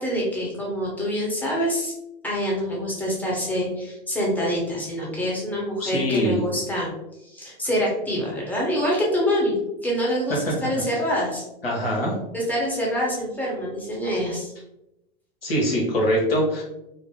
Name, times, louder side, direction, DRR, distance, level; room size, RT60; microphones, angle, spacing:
voice 1, 0.0-1.9 2.2-6.9 7.2-9.5 9.8-11.4 12.3-14.5, equal, 5° left, -4 dB, 1.0 m, -26 dB
voice 2, 5.8-6.4 10.4-10.5 11.6-12.1 15.4-16.6, equal, 80° left, -3 dB, 1.1 m, -23 dB
2.7 x 2.1 x 3.6 m, 0.88 s
figure-of-eight pair, 90°, 29 cm